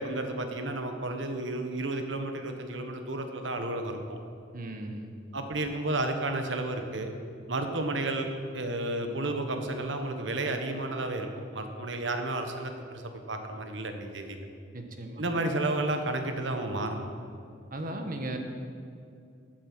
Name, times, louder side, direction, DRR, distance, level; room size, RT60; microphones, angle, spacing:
voice 1, 0.0-4.2 5.3-7.1 7.5-11.3 11.5-14.5 15.2-17.1, right 2 dB, 85° right, 5 dB, 1.4 m, -32 dB
voice 2, 4.5-5.1 14.7-15.2 17.7-18.4, right 1 dB, 50° right, 5 dB, 1.4 m, -36 dB
15.0 x 9.0 x 6.2 m, 2.4 s
head